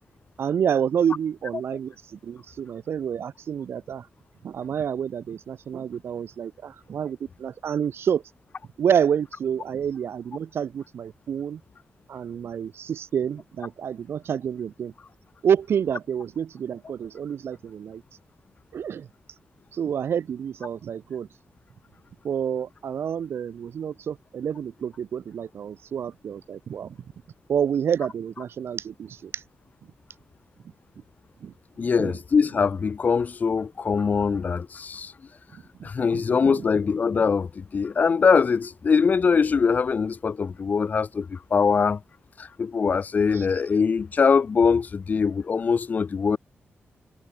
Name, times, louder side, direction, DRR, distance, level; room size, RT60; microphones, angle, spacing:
voice 1, 0.4-4.1 4.4-8.2 8.8-11.6 12.1-14.9 15.4-18.0 18.7-19.1 19.7-21.3 22.2-27.0 27.5-29.4 31.4-31.5 31.8-32.1 35.8-36.7 43.3-43.5, right 8 dB, 80° right, 3.6 m, -28 dB
voice 2, 31.8-35.1 35.8-42.0 42.4-46.4, left 5 dB, 45° left, 1.4 m, -22 dB
wide cardioid pair, 165°, 4 cm